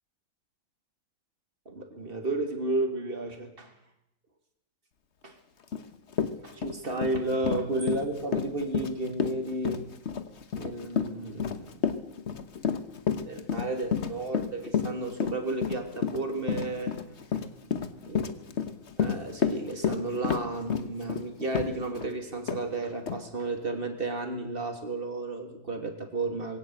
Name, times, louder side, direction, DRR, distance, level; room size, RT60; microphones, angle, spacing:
voice 1, 1.7-3.7 5.2-5.4 6.4-9.8 10.5-11.7 13.3-17.0 18.1-18.2 19.0-26.6, right 2 dB, 25° right, 5 dB, 3.0 m, -32 dB
Run, 5.7-5.8 6.1-22.1 22.5-22.6 23.1-23.2, left 7 dB, 40° left, 1.2 m, -30 dB
21.5 x 17.0 x 8.0 m, 0.82 s
omnidirectional pair, 2.2 m